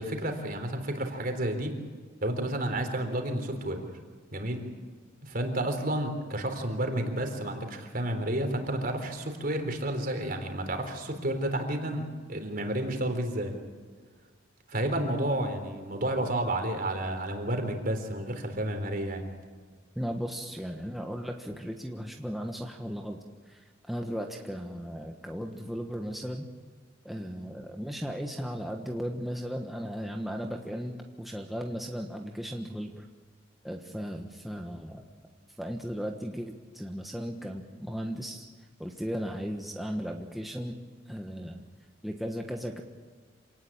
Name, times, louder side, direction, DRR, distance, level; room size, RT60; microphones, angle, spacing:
voice 1, 0.0-1.7 2.2-3.9 4.3-4.6 5.2-12.0 12.3-13.5 14.7-19.3, right 1 dB, 50° right, 5 dB, 3.9 m, -31 dB
voice 2, 19.9-23.6 23.9-26.4 27.0-33.1 33.6-35.0 35.6-38.5 38.8-40.8 41.1-41.6 42.0-42.8, equal, ahead, 2 dB, 1.3 m, -36 dB
27.5 x 18.5 x 8.8 m, 1.5 s
head